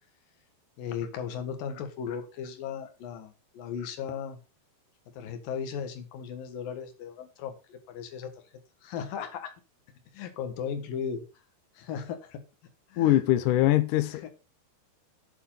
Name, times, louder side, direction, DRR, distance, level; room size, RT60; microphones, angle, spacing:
voice 1, 0.8-4.4 5.1-8.3 8.8-9.5 10.1-11.2 11.7-12.4 12.9-13.2 14.2-14.3, left 7 dB, 65° left, 3.0 m, -36 dB
voice 2, 13.0-14.3, left 14 dB, 80° left, 1.9 m, -23 dB
8.9 x 7.0 x 5.6 m
omnidirectional pair, 4.7 m